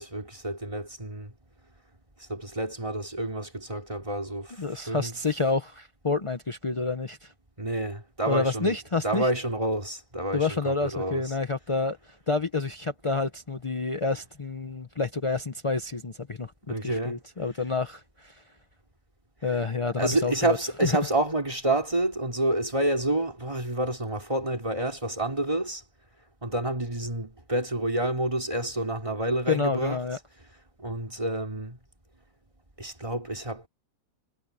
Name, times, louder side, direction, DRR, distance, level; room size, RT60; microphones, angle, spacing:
voice 1, 0.0-1.3 2.2-5.2 7.6-8.8 9.0-11.3 16.7-17.2 20.0-25.8 26.4-30.0 30.8-31.8 32.8-33.6, right 1 dB, 15° right, 3.3 m, -29 dB
voice 2, 4.6-7.3 8.3-9.3 10.3-12.0 12.3-16.5 16.8-18.4 19.4-20.6 20.8-20.9 29.5-30.2, left 3 dB, 40° left, 0.4 m, -28 dB
omnidirectional pair, 2.0 m